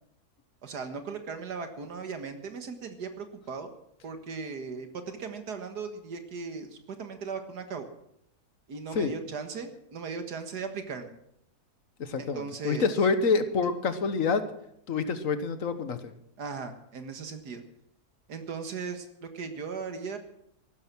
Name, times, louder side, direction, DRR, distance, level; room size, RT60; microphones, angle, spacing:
voice 1, 0.6-3.7 4.0-7.9 8.7-11.1 12.2-12.9 16.4-17.6 18.3-20.2, right 5 dB, 90° right, 7 dB, 2.2 m, -38 dB
voice 2, 12.0-14.4 14.9-16.1, left 4 dB, 60° left, 10 dB, 1.5 m, -27 dB
15.0 x 12.5 x 6.1 m, 0.74 s
omnidirectional pair, 1.7 m